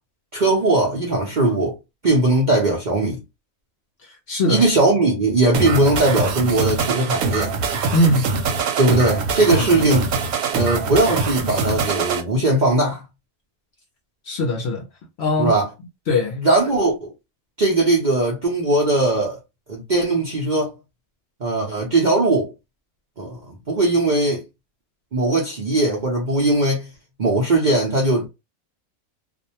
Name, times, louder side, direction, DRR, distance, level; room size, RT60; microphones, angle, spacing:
voice 1, 0.3-1.8 2.0-3.2 4.5-7.5 8.8-10.1 10.5-13.0 15.4-15.6 16.4-17.1 17.6-19.4 19.7-20.7 21.4-22.5 23.2-24.4 25.1-26.9 27.2-28.3, right 2 dB, 50° right, 0.6 m, -19 dB
voice 2, 4.0-4.6 7.9-8.3 9.6-9.7 14.2-14.9 15.2-15.5 16.1-16.4, left 1 dB, 60° left, 0.7 m, -21 dB
sound 1, 5.5-12.2, right 4 dB, 80° right, 1.1 m, -23 dB
2.5 x 2.1 x 2.8 m
omnidirectional pair, 1.5 m